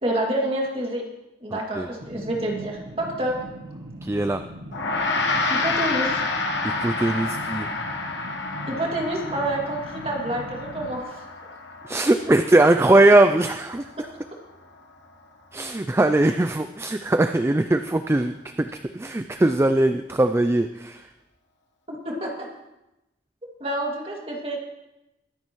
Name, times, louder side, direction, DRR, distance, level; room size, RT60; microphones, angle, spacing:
voice 1, 0.0-1.0 1.4-3.4 5.5-6.2 8.7-11.2 21.9-22.5 23.6-24.6, right 1 dB, 30° right, -1 dB, 2.4 m, -28 dB
voice 2, 1.5-1.9 4.0-4.4 6.6-7.7 11.8-13.9 15.5-21.1, right 2 dB, 15° right, 9 dB, 0.3 m, -20 dB
sound 1, 2.0-11.0, right 1 dB, 65° right, 1.0 m, -40 dB
Gong, 4.7-14.3, left 3 dB, 80° left, 1.2 m, -29 dB
23.0 x 9.8 x 3.1 m, 0.92 s
head